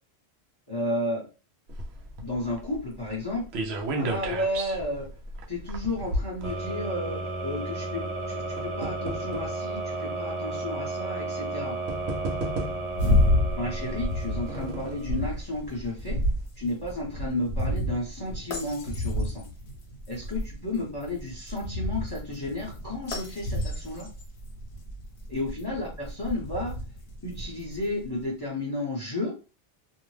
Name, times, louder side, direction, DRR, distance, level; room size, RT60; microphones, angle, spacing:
voice 1, 0.7-1.2 2.2-3.4 3.9-5.1 5.5-11.8 13.6-16.2 16.6-19.4 20.1-24.1 25.3-26.7 27.2-29.3, left 1 dB, 25° left, -4 dB, 0.7 m, -32 dB
sound 1, 1.7-7.1 8.0-9.6 10.4-10.5 11.5-11.6 11.9-13.1 14.0-15.1 15.5-15.6 15.9-16.0, right 1 dB, 70° right, 0.8 m, -34 dB
sound 2, 6.4-15.3, right 2 dB, 45° right, 0.4 m, -34 dB
sound 3, 12.9-28.1, left 1 dB, 65° left, 1.0 m, -30 dB
2.6 x 2.0 x 3.1 m, 0.32 s
omnidirectional pair, 1.1 m